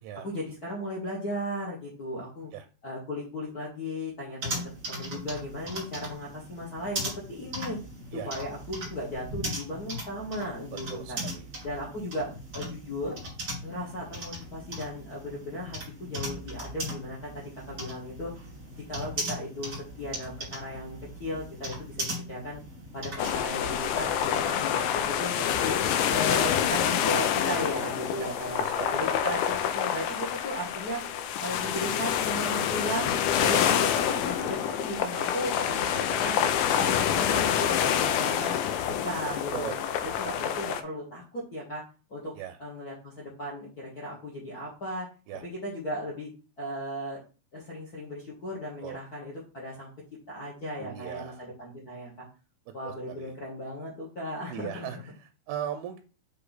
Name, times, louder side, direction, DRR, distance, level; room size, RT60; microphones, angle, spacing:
voice 1, 0.1-2.5 2.8-4.6 4.9-7.8 8.2-11.2 11.6-12.3 12.5-13.2 13.6-18.3 18.9-22.6 22.9-25.8 26.1-28.6 28.9-31.0 31.4-36.3 36.6-38.5 38.9-39.8 40.1-41.8 42.1-42.3 42.6-45.1 45.4-46.3 46.6-47.2 47.5-49.9 50.3-52.1 52.7-54.9, equal, 70° left, -6 dB, 0.8 m, -36 dB
sound 1, 4.4-23.3, right 1 dB, 40° right, 1.2 m, -38 dB
voice 2, 10.9-11.5 24.5-24.6 28.2-29.2 39.5-39.7 40.0-40.4 42.4-42.6 45.3-45.4 48.8-49.0 50.8-51.4 52.8-53.3 54.5-56.0, right 10 dB, 85° right, 6 dB, 2.4 m, -39 dB
sound 2, 23.2-40.8, left 9 dB, 90° left, 1.9 m, -27 dB
7.6 x 3.3 x 4.0 m, 0.36 s
omnidirectional pair, 4.3 m